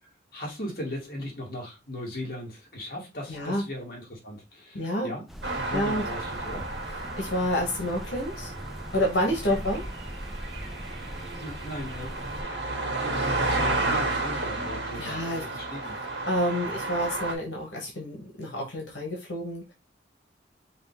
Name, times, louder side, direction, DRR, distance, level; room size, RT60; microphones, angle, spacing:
voice 1, 0.0-5.3 5.5-6.7 9.5-9.6 11.4-16.0 16.7-16.8, left 1 dB, 55° left, 2.1 m, -38 dB
voice 2, 3.3-3.6 4.7-5.1 5.7-6.0 7.1-8.5 8.9-9.8 15.0-15.4 16.3-19.7, equal, 85° left, 1.3 m, -28 dB
sound 1, 5.3-12.4, equal, ahead, 0.5 m, -40 dB
sound 2, 5.4-17.3, right 2 dB, 80° right, 1.7 m, -32 dB
5.5 x 2.5 x 3.6 m
head